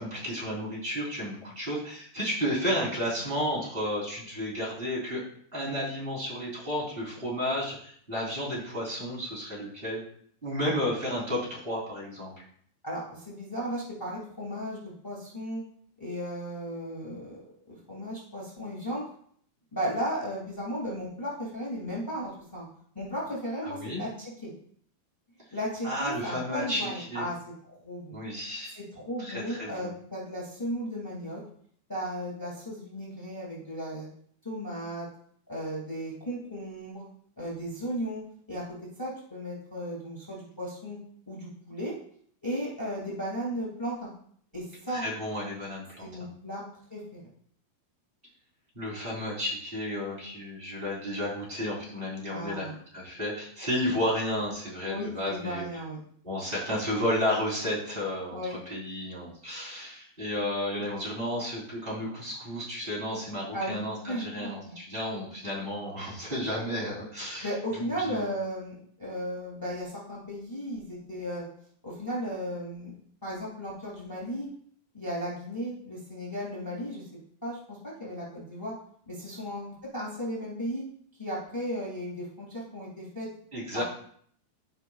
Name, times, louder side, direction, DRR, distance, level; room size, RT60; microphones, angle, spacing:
voice 1, 0.0-5.2 5.5-10.0 10.4-12.3 23.6-24.0 25.8-27.3 28.1-28.8 29.2-29.9 44.9-46.1 48.7-52.6 52.9-55.6 56.2-67.5 67.8-68.3 83.5-83.8, equal, 15° right, -7 dB, 2.6 m, -32 dB
voice 2, 12.8-15.6 16.0-17.4 17.6-19.0 19.7-22.6 22.9-24.1 24.4-24.5 25.5-27.4 27.7-28.2 28.7-31.4 31.9-34.1 34.4-35.1 35.5-37.0 37.4-38.2 38.5-41.0 41.3-42.0 42.4-44.1 44.5-45.1 46.0-46.6 46.9-47.2 52.3-52.7 54.9-56.0 58.3-58.6 63.5-64.7 67.4-71.4 71.8-72.9 73.2-74.5 74.9-77.0 77.4-78.7 79.1-80.8 81.2-83.3 83.7-83.8, equal, 20° left, -5 dB, 0.5 m, -35 dB
14.5 x 5.1 x 2.3 m, 0.62 s
omnidirectional pair, 4.4 m